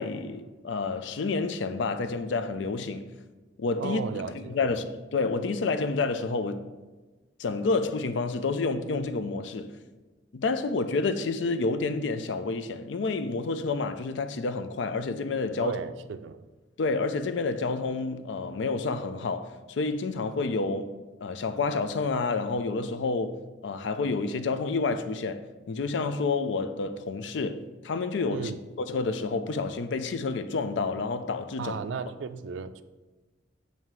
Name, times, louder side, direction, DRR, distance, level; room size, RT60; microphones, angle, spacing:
voice 1, 0.0-3.1 3.6-4.0 4.3-6.6 7.4-9.7 10.3-15.8 16.8-20.9 21.2-28.5 28.8-31.8, left 3 dB, 80° left, 0.4 m, -29 dB
voice 2, 3.8-4.8 15.6-16.5 28.3-28.6 31.6-32.8, right 6 dB, 80° right, 0.3 m, -35 dB
7.4 x 2.8 x 4.5 m
head